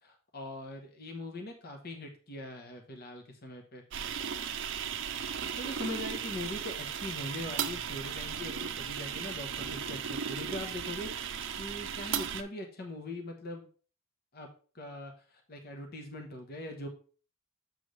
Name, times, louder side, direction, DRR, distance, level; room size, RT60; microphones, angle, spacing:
voice 1, 0.0-3.8 5.6-11.3 11.6-13.7 14.3-14.5 14.7-16.9, left 1 dB, 45° left, 3 dB, 1.2 m, -41 dB
sound 1, 3.9-12.4, right 7 dB, 60° right, 0.6 m, -36 dB
6.6 x 6.2 x 3.2 m, 0.39 s
head